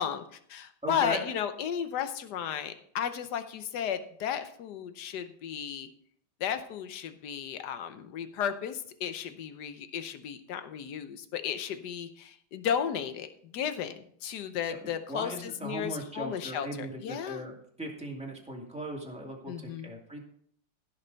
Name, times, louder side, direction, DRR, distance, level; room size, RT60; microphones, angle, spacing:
voice 1, 0.0-5.9 6.4-17.4 19.5-19.9, left 8 dB, 65° left, 9 dB, 1.2 m, -34 dB
voice 2, 0.8-1.2 14.7-14.8 15.1-20.2, right 1 dB, 5° right, -1 dB, 2.0 m, -38 dB
16.0 x 6.7 x 4.0 m, 0.64 s
omnidirectional pair, 2.3 m